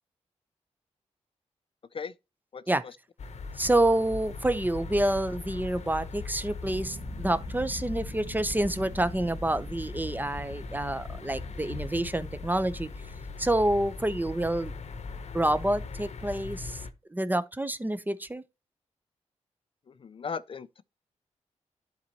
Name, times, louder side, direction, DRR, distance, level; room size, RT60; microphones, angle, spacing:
sound 1, 3.2-16.9, left 4 dB, 65° left, 0.9 m, -40 dB
voice 1, 3.6-12.9 13.4-14.7 15.3-16.8 17.1-18.4, right 1 dB, 15° right, 0.7 m, -28 dB
sound 2, 6.6-15.1, right 1 dB, 55° right, 2.0 m, -46 dB
voice 2, 19.9-20.8, left 6 dB, 45° left, 0.4 m, -37 dB
11.5 x 4.1 x 2.9 m
cardioid pair, 60°, 12 cm